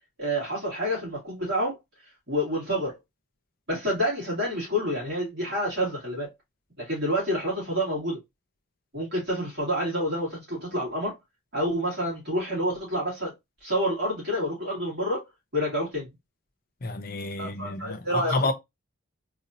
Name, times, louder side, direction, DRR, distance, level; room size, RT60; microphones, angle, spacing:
voice 1, 0.2-1.8 2.3-3.0 3.7-6.3 6.8-8.2 8.9-11.2 11.5-13.3 13.6-15.2 15.5-16.1 17.4-18.4, equal, 45° right, 2.4 m, -28 dB
voice 2, 16.8-18.5, left 2 dB, 40° left, 0.5 m, -29 dB
4.0 x 2.8 x 2.6 m
head